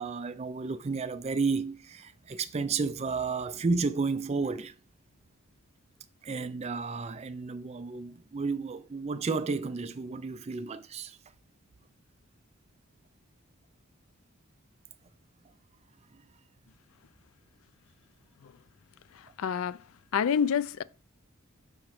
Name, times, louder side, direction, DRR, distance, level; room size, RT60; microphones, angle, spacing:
voice 1, 0.0-4.7 6.2-11.2, right 4 dB, 30° right, 0.4 m, -32 dB
voice 2, 19.1-19.8 20.1-20.8, left 7 dB, 70° left, 0.3 m, -28 dB
6.4 x 3.0 x 5.8 m
head